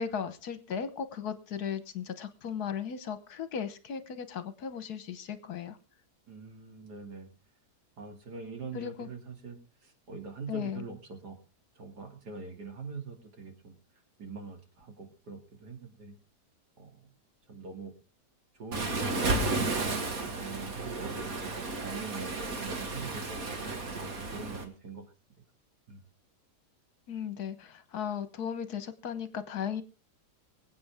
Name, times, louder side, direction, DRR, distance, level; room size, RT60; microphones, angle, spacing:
voice 1, 0.0-5.8 8.7-9.1 10.5-10.8 27.1-29.8, left 7 dB, 70° left, 12 dB, 1.7 m, -36 dB
voice 2, 6.3-7.3 8.0-11.4 11.8-13.7 14.2-16.2 16.8-17.0 17.5-17.9 18.5-19.9 20.3-21.5 21.8-23.4 24.0-25.0 25.9-26.0, right 4 dB, 75° right, 5 dB, 3.0 m, -43 dB
Waves surf, 18.7-24.6, right 2 dB, 55° right, 2.3 m, -33 dB
24.5 x 8.6 x 3.5 m, 0.31 s
omnidirectional pair, 1.8 m